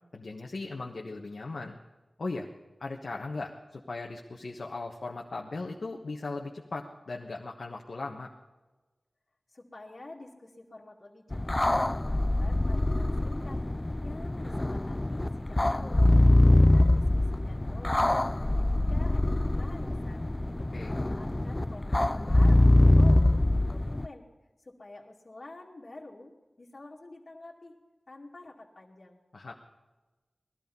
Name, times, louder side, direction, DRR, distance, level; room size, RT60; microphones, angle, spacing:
voice 1, 0.1-1.8 2.2-2.5 2.8-8.3 20.7-20.9 29.3-29.5, left 3 dB, 80° left, 0 dB, 1.3 m, -38 dB
voice 2, 9.5-11.8 12.2-13.6 14.0-16.1 16.5-20.3 20.9-24.3 24.6-26.3 26.6-27.8 28.1-29.2, left 2 dB, 60° left, -4 dB, 2.3 m, -48 dB
sound 1, 11.3-24.1, left 1 dB, 30° left, 0.4 m, -24 dB
19.5 x 13.0 x 5.4 m, 1.2 s
cardioid pair, 45°, 0 cm